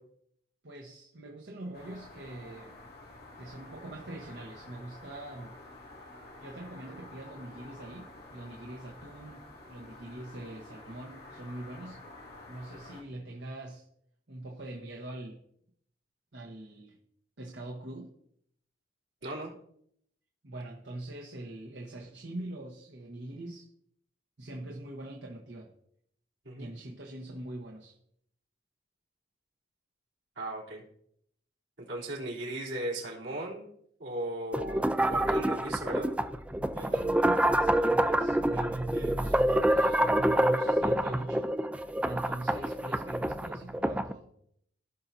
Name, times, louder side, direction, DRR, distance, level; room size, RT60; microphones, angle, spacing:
voice 1, 0.6-2.8 3.4-5.5 6.4-9.4 9.7-12.0 12.5-13.8 14.3-15.4 16.3-17.0 17.4-18.1 20.4-23.7 24.4-25.7 26.6-27.9 36.7-41.5 42.0-44.3, right 1 dB, 70° right, -2 dB, 1.2 m, -42 dB
sound 1, 1.7-13.0, left 2 dB, 60° left, 1.6 m, -50 dB
voice 2, 30.3-30.8 31.8-33.7 34.0-36.1, right 1 dB, 85° right, -4 dB, 3.5 m, -37 dB
sound 2, 34.5-44.1, right 1 dB, 5° right, 0.4 m, -27 dB
16.5 x 5.7 x 2.7 m, 0.70 s
head